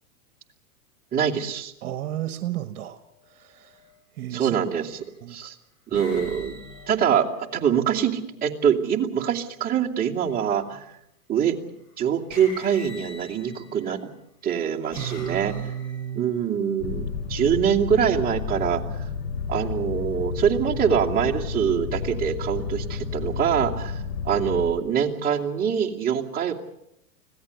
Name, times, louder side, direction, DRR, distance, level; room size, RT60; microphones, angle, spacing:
voice 1, 1.1-1.7 4.3-5.0 5.3-5.5 5.9-6.6 6.9-7.3 7.5-10.8 11.3-11.6 12.0-14.1 14.4-15.5 16.1-19.0 19.5-24.0 24.2-26.5, right 8 dB, 20° right, -2 dB, 2.7 m, -24 dB
voice 2, 1.8-3.0 3.3-3.8 4.2-4.6 5.2-5.4 14.9-16.4, right 12 dB, 55° right, 9 dB, 1.6 m, -32 dB
sound 1, 3.7-4.0 4.8-5.3 5.9-8.0 10.2-10.7 11.8-11.9 12.3-13.9 14.5-16.2, left 3 dB, 35° left, 7.8 m, -43 dB
sound 2, 16.8-24.7, left 5 dB, 60° left, 6.3 m, -31 dB
25.5 x 17.5 x 8.3 m, 0.82 s
hypercardioid pair, 130°, 43 cm